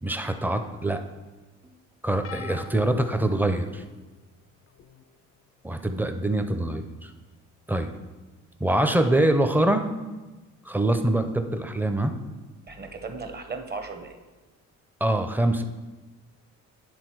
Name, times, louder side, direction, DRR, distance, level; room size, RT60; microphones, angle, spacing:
voice 1, 0.0-1.0 1.6-1.7 2.0-3.8 5.6-7.1 7.7-7.9 8.6-9.9 10.7-12.1 15.0-15.6, right 1 dB, 5° right, 7 dB, 0.5 m, -24 dB
sound 1, 2.2-4.0 4.8-5.0 6.3-6.4, left 8 dB, 45° left, 0.5 m, -42 dB
voice 2, 12.7-14.2, right 4 dB, 35° right, 6 dB, 0.9 m, -36 dB
9.7 x 3.7 x 4.6 m, 1.2 s
cardioid pair, 90°, 30 cm